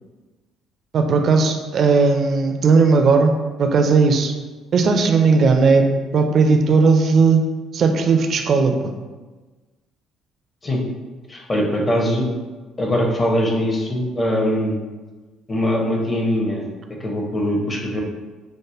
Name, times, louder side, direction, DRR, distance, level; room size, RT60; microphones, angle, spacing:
voice 1, 0.9-3.3 3.6-4.3 4.7-7.4 7.7-8.9, right 4 dB, 45° right, 5 dB, 0.4 m, -16 dB
voice 2, 11.3-12.3 12.8-14.8 15.5-16.7 17.0-18.0, equal, 30° left, 0 dB, 0.7 m, -21 dB
4.7 x 2.1 x 2.4 m, 1.3 s
figure-of-eight pair, 50°, 0 cm